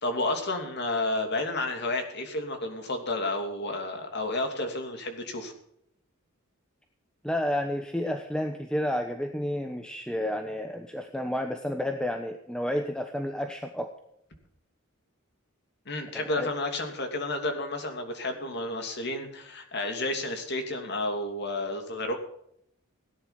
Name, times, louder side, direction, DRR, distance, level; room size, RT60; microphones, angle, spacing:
voice 1, 0.0-5.5 15.9-22.1, left 2 dB, 55° left, 5 dB, 3.0 m, -31 dB
voice 2, 7.2-13.9 16.2-16.5, left 1 dB, 5° left, 5 dB, 1.0 m, -31 dB
17.0 x 10.5 x 5.9 m, 0.72 s
head